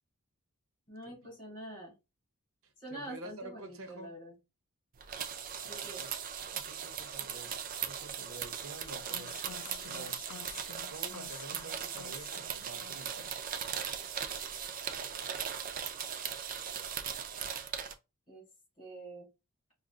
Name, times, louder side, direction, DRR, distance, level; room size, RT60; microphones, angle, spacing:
voice 1, 0.9-1.9 2.8-4.3 5.6-6.0 18.3-18.4 18.8-19.3, right 1 dB, 25° left, 1.7 m, -46 dB
voice 2, 2.6-4.1 5.6-6.1 6.5-7.6 7.8-10.2 10.9-13.5, right 2 dB, 65° right, 0.8 m, -49 dB
sound 1, 5.0-17.9, right 8 dB, 40° right, 0.4 m, -39 dB
sound 2, 9.1-13.4 13.6-14.1, left 10 dB, 75° left, 0.3 m, -51 dB
4.8 x 2.5 x 2.4 m
head